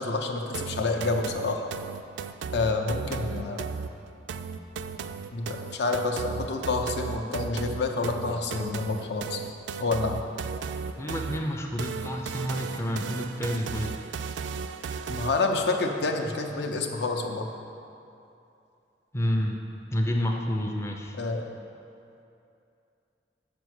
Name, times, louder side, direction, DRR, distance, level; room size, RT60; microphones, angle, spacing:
voice 1, 0.0-1.7 2.5-3.7 5.3-9.4 9.8-10.2 15.1-17.5 21.2-21.4, left 3 dB, 65° left, 3 dB, 0.6 m, -28 dB
sound 1, 0.5-15.6, right 5 dB, 85° right, 0.3 m, -36 dB
voice 2, 11.0-13.9 19.1-19.6 19.9-21.2, equal, 15° left, 1 dB, 0.4 m, -29 dB
6.8 x 5.0 x 6.3 m, 2.6 s
head